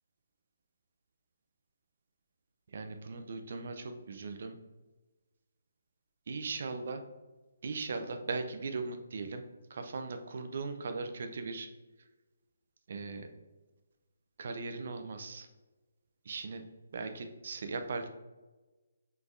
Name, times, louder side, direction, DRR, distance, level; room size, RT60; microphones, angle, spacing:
voice 1, 2.7-4.6 6.3-7.1 7.6-9.4 9.7-11.7 12.9-13.3 14.4-15.5 16.2-16.6 16.9-18.1, right 4 dB, 55° right, 7 dB, 0.6 m, -38 dB
6.0 x 3.4 x 2.5 m, 1.2 s
figure-of-eight pair, 145°, 0 cm